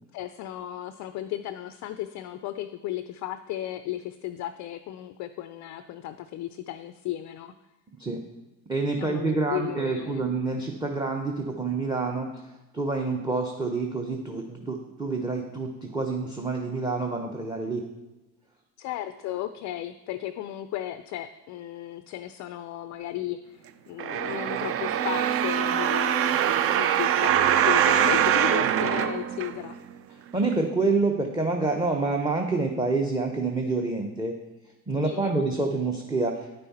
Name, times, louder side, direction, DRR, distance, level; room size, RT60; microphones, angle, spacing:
voice 1, 0.1-7.5 9.0-10.2 18.8-29.8 35.0-35.3, left 13 dB, 40° left, 11 dB, 0.4 m, -35 dB
voice 2, 8.7-17.8 30.1-34.3 34.9-36.5, right 3 dB, 10° right, 2 dB, 0.8 m, -27 dB
sound 1, 24.0-29.9 30.5-30.6, right 10 dB, 30° right, 0.4 m, -23 dB
9.6 x 5.5 x 4.2 m, 1.0 s
hypercardioid pair, 70°, 48 cm